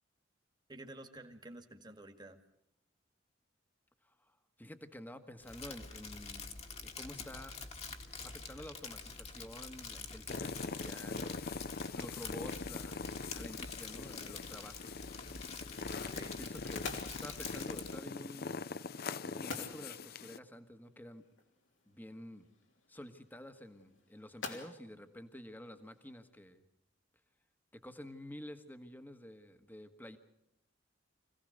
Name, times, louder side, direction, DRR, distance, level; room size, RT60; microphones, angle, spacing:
voice 1, 0.7-2.4 16.0-16.4, right 1 dB, 25° right, 6 dB, 1.9 m, -51 dB
voice 2, 4.0-6.5 6.8-7.5 8.2-11.6 11.9-13.0 13.3-15.0 16.4-18.6 19.2-21.2 21.9-22.5 22.9-26.6 27.7-30.2, left 1 dB, 10° left, 8 dB, 1.4 m, -50 dB
Crumpling crinkling, 5.4-18.0, left 4 dB, 35° left, 1.8 m, -47 dB
sound 1, 10.3-20.4, left 4 dB, 55° left, 0.7 m, -42 dB
sound 2, 17.9-26.3, left 3 dB, 85° left, 3.2 m, -51 dB
25.5 x 17.0 x 6.6 m, 0.82 s
head